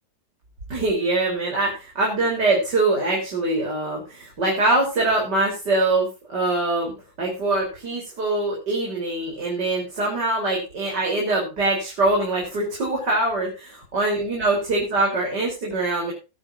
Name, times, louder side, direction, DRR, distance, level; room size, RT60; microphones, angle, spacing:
voice 1, 0.7-16.1, right 2 dB, 60° right, -1 dB, 4.7 m, -23 dB
19.5 x 9.4 x 2.7 m, 0.30 s
omnidirectional pair, 2.1 m